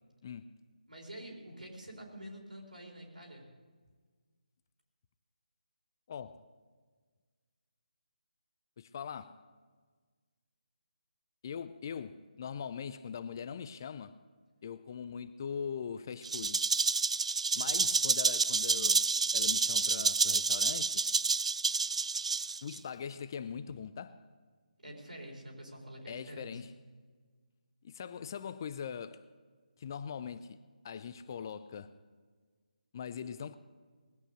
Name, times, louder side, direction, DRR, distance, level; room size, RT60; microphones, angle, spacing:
voice 1, 0.9-3.5 17.5-17.8 24.8-26.6, equal, 70° right, 4.4 m, -47 dB
voice 2, 6.1-6.4 8.8-9.4 11.4-14.2 14.6-16.6 17.5-19.1 19.3-21.0 22.6-24.2 26.1-26.7 27.8-29.3 29.8-30.6 30.8-31.9 32.9-33.6, left 7 dB, 25° left, 0.4 m, -41 dB
Rattle (instrument), 16.2-22.8, right 4 dB, 50° right, 0.4 m, -29 dB
20.0 x 8.7 x 6.5 m
figure-of-eight pair, 150°, 4 cm